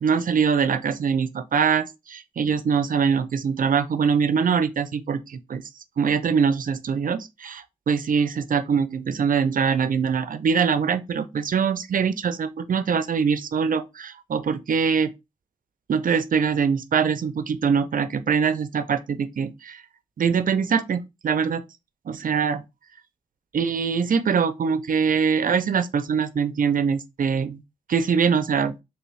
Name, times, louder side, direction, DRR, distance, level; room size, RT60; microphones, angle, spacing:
voice 1, 0.0-5.6 6.0-15.1 15.9-19.8 20.2-21.6 22.1-22.6 23.5-27.6 27.9-28.8, right 6 dB, 75° right, 0.4 m, -23 dB
3.4 x 3.0 x 3.1 m
wide cardioid pair, 65°, 14 cm